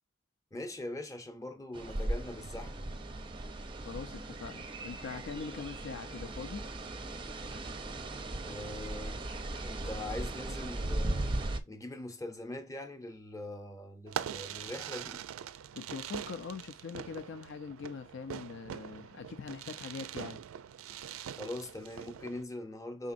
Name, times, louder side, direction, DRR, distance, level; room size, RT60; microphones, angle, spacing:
voice 1, 0.5-2.9 8.4-9.2 9.6-11.4 11.7-15.2 21.3-23.1, left 1 dB, 15° left, 0.7 m, -42 dB
sound 1, 1.7-11.6, right 2 dB, 25° right, 0.5 m, -38 dB
voice 2, 3.8-6.7 15.7-20.4, left 5 dB, 60° left, 0.5 m, -42 dB
Fireworks, 14.1-22.4, right 9 dB, 85° right, 0.4 m, -43 dB
5.0 x 3.8 x 2.5 m
head